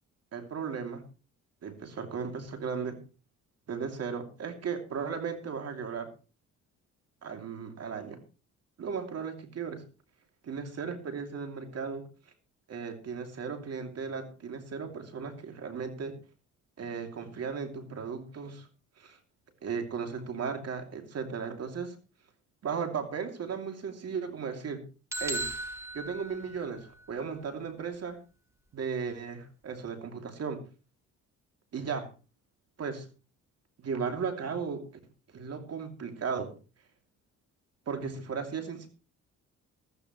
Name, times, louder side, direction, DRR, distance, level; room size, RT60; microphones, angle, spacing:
voice 1, 0.3-1.1 1.6-3.0 3.7-6.1 7.2-8.2 8.8-9.9 10.4-12.1 12.7-16.2 16.8-18.7 19.0-19.2 19.6-22.0 22.6-24.9 25.2-25.5 25.9-28.2 28.7-30.6 31.7-32.1 32.8-33.1 33.8-35.0 35.3-36.6 37.9-38.9, right 6 dB, 55° right, 6 dB, 2.9 m, -36 dB
sound 1, 25.1-27.0, right 1 dB, 10° right, 1.5 m, -37 dB
15.0 x 14.0 x 3.2 m, 0.33 s
cardioid pair, 90°, 30 cm